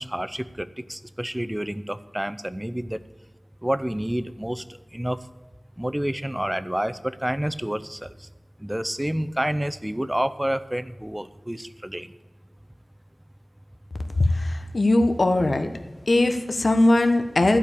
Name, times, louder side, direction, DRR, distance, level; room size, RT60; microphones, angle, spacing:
voice 1, 0.0-3.0 3.6-4.6 4.9-5.2 5.8-8.0 8.6-12.1, right 1 dB, 15° right, 12 dB, 0.6 m, -29 dB
voice 2, 14.2-15.7 16.1-17.6, left 2 dB, 70° left, 6 dB, 1.0 m, -20 dB
14.0 x 5.1 x 8.4 m, 1.2 s
wide cardioid pair, 70°, 0 cm